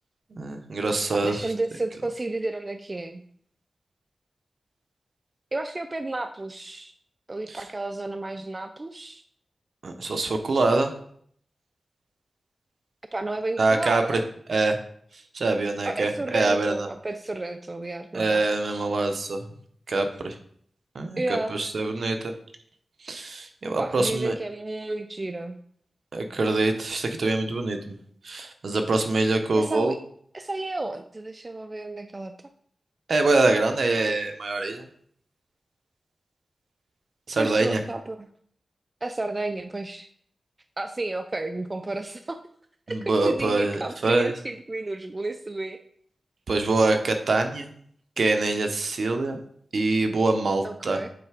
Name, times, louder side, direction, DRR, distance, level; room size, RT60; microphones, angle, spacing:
voice 1, 0.3-1.4 7.5-7.6 9.8-10.9 13.6-14.2 14.5-14.8 15.3-16.9 18.1-19.4 19.9-20.4 20.9-22.3 23.0-24.3 26.1-28.0 28.2-29.9 33.1-34.8 37.3-37.8 42.9-44.3 46.5-47.7 48.2-49.4 49.7-51.0, right 2 dB, 60° right, 5 dB, 0.8 m, -24 dB
voice 2, 1.2-3.2 5.5-6.9 7.3-9.2 13.1-14.3 15.8-18.9 21.2-21.6 23.8-25.6 29.6-30.0 30.3-32.3 37.4-38.3 39.0-40.1 40.8-42.4 42.9-45.8 50.6-51.1, right 2 dB, 25° right, 8 dB, 0.3 m, -32 dB
7.7 x 3.3 x 4.9 m, 0.63 s
wide cardioid pair, 125°, 0 cm